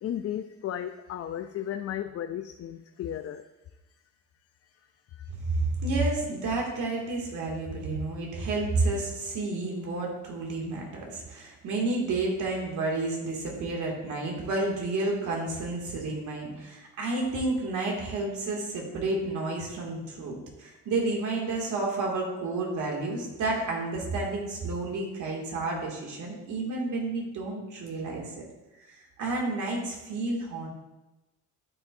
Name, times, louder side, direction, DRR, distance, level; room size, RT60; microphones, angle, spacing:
voice 1, 0.0-3.4 5.2-5.3, left 10 dB, 50° left, 9 dB, 0.5 m, -34 dB
voice 2, 5.4-28.3 28.9-30.7, right 2 dB, 75° right, -1 dB, 2.4 m, -30 dB
11.5 x 6.9 x 2.6 m, 1.0 s
cardioid pair, 90°, 30 cm